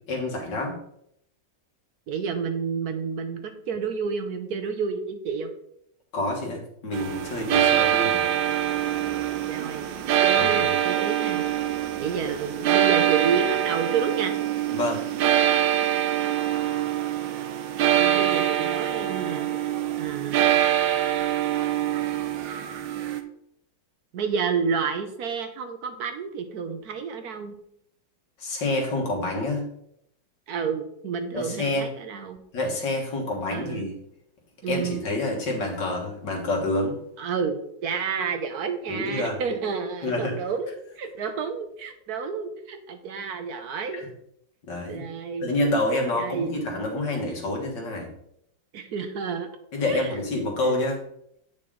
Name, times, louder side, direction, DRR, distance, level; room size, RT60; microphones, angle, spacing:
voice 1, 0.1-0.8 6.1-8.2 10.4-10.7 14.7-15.0 28.4-29.7 31.3-31.9 32.5-33.9 34.7-37.0 38.9-39.4 40.0-40.4 43.9-44.1 44.7-45.0 45.4-48.1 49.7-51.0, left 2 dB, 80° left, 0 dB, 2.4 m, -27 dB
voice 2, 2.1-5.5 9.5-9.9 10.2-11.4 12.0-14.4 18.0-19.7 20.0-20.5 24.1-27.6 30.5-32.4 33.5-33.9 34.6-35.0 37.2-44.0 44.9-45.5 46.1-46.5 48.7-49.5 49.8-50.2 50.7-50.8, right 6 dB, 65° right, 8 dB, 1.1 m, -30 dB
sound 1, 6.9-23.2, right 11 dB, 85° right, 1.4 m, -24 dB
8.7 x 5.8 x 3.7 m, 0.73 s
omnidirectional pair, 2.0 m